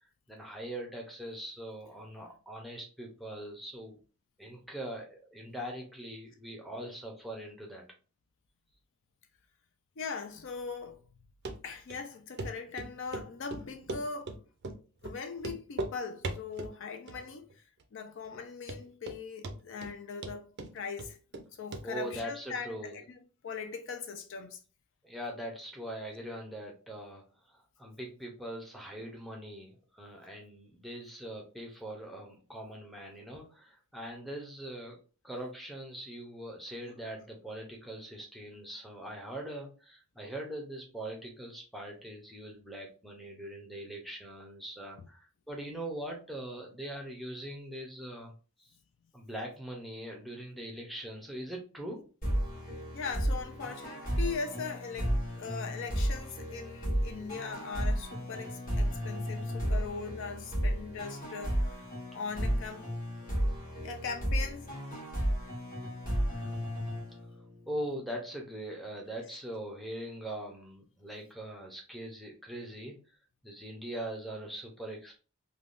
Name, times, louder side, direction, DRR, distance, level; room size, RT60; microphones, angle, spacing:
voice 1, 0.3-4.0 4.4-7.8 21.8-23.0 25.0-35.0 35.2-48.3 48.6-48.7 49.1-52.0 63.2-63.5 67.7-73.0 73.4-75.2, right 1 dB, ahead, 0.6 m, -42 dB
voice 2, 10.0-11.0 11.6-14.4 15.0-21.2 21.6-23.0 23.4-24.6 45.0-45.1 52.9-61.9 62.1-62.9 63.8-64.7 69.3-69.4, left 5 dB, 60° left, 0.4 m, -40 dB
Run, 11.4-11.6 11.9-12.0 12.4-12.5 12.8-13.3 13.5-14.4 14.6-14.8 15.0-15.1 15.4-15.9 16.2-16.7 17.1-17.5 17.8-17.9 18.3-18.4 18.7-19.2 19.4-19.9 20.2-21.4 21.7-21.8 22.1-22.2, right 2 dB, 50° right, 0.4 m, -38 dB
sound 1, 52.2-67.7, equal, 40° left, 1.5 m, -33 dB
3.3 x 2.2 x 2.5 m
head